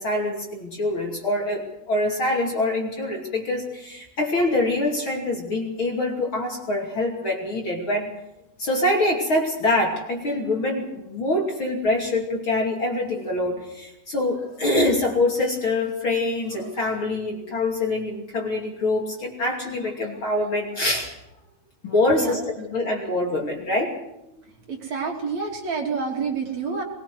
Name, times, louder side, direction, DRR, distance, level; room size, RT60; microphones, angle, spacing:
voice 1, 0.0-8.1 8.6-21.1 21.8-23.9, left 2 dB, 35° left, 0 dB, 3.1 m, -25 dB
voice 2, 24.7-26.8, right 5 dB, 50° right, 0 dB, 3.9 m, -28 dB
21.5 x 20.5 x 6.2 m, 0.87 s
omnidirectional pair, 4.2 m